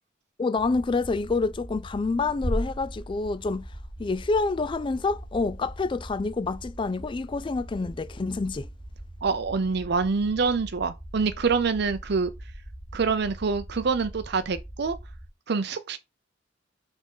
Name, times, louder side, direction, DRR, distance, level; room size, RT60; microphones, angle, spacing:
voice 1, 0.4-3.7 4.0-8.7, left 3 dB, 25° left, 0.3 m, -27 dB
sound 1, 0.6-15.3, right 1 dB, 5° left, 1.9 m, -42 dB
sound 2, 2.4-4.5, equal, 50° left, 2.2 m, -34 dB
voice 2, 9.2-12.3 12.9-14.9 15.5-16.0, right 4 dB, 60° right, 0.6 m, -26 dB
6.4 x 3.6 x 5.4 m
head